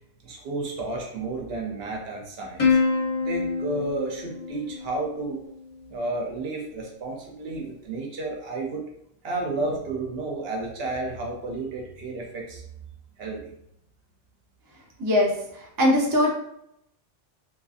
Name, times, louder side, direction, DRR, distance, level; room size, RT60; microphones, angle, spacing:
voice 1, 0.2-2.8 3.2-5.4 5.9-8.9 9.2-12.6 13.2-13.5, right 2 dB, 60° right, 0 dB, 0.8 m, -32 dB
Plucked string instrument, 2.6-5.3, left 4 dB, 35° left, 0.7 m, -26 dB
voice 2, 15.0-16.3, left 1 dB, 30° right, -3 dB, 0.4 m, -22 dB
2.7 x 2.5 x 2.3 m, 0.77 s
omnidirectional pair, 1.2 m